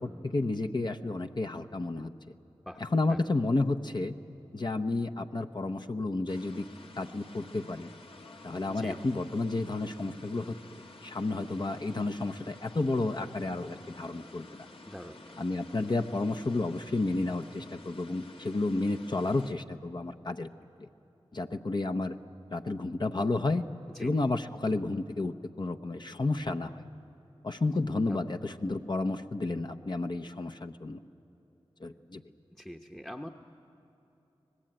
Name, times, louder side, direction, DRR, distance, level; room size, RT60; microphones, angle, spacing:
voice 1, 0.0-2.1 2.8-4.1 4.5-6.7 7.0-7.9 8.4-10.6 11.0-14.5 15.4-20.5 20.8-20.9 21.3-22.2 22.5-23.6 24.0-26.8 27.4-31.0 31.8-32.2, left 2 dB, 45° left, 7 dB, 0.8 m, -31 dB
voice 2, 2.7-3.2 8.7-9.0 14.9-15.4 23.9-24.1 28.1-28.2 32.5-33.3, equal, 5° left, 4 dB, 0.9 m, -44 dB
sound 1, 6.3-19.5, left 2 dB, 60° left, 1.3 m, -51 dB
24.5 x 19.0 x 8.9 m, 3.0 s
wide cardioid pair, 55°, 10 cm